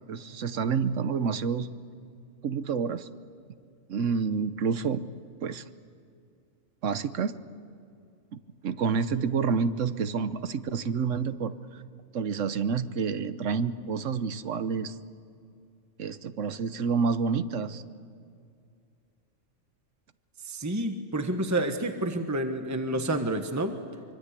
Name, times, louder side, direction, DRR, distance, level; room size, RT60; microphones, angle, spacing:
voice 1, 0.1-1.7 2.4-3.1 3.9-5.0 5.4-5.6 6.8-7.3 8.3-11.5 12.1-14.9 16.0-17.8, right 5 dB, 70° right, 12 dB, 1.3 m, -28 dB
voice 2, 20.4-23.8, right 1 dB, 15° right, 6 dB, 1.2 m, -29 dB
25.0 x 25.0 x 8.3 m, 2.4 s
omnidirectional pair, 1.3 m